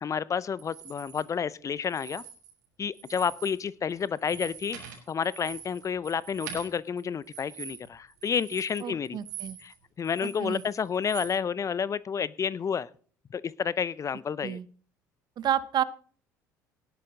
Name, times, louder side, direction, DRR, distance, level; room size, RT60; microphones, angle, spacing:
voice 1, 0.0-2.2 2.8-4.8 5.1-9.2 9.6-12.9 13.3-14.6, left 7 dB, 35° left, 21 dB, 0.6 m, -30 dB
sound 1, 0.6-1.2 1.8-2.6 2.9-3.6 3.9-9.7 10.0-11.3, right 8 dB, 75° right, 3.4 m, -44 dB
voice 2, 8.8-9.6 10.2-10.6 14.4-14.7 15.4-15.8, right 10 dB, 45° right, 17 dB, 0.9 m, -30 dB
18.0 x 8.2 x 3.8 m, 0.43 s
figure-of-eight pair, 60°, 10 cm